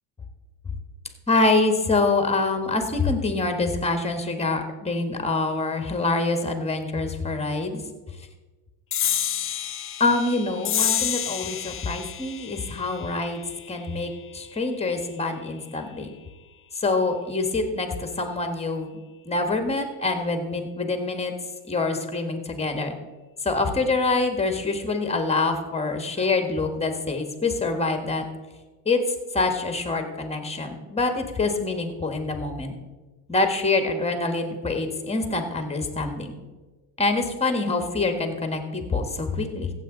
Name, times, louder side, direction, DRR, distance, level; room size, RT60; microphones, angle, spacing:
voice 1, 1.3-7.8 10.0-13.4 13.7-16.1 16.7-18.9 19.2-21.3 21.7-22.9 23.4-28.2 28.8-29.0 29.3-32.7 33.3-36.3 37.0-39.7, left 3 dB, 15° left, 6 dB, 1.5 m, -25 dB
sound 1, 8.9-15.8, left 10 dB, 30° left, 0.6 m, -30 dB
15.5 x 8.0 x 3.8 m, 1.3 s
cardioid pair, 110°, 43 cm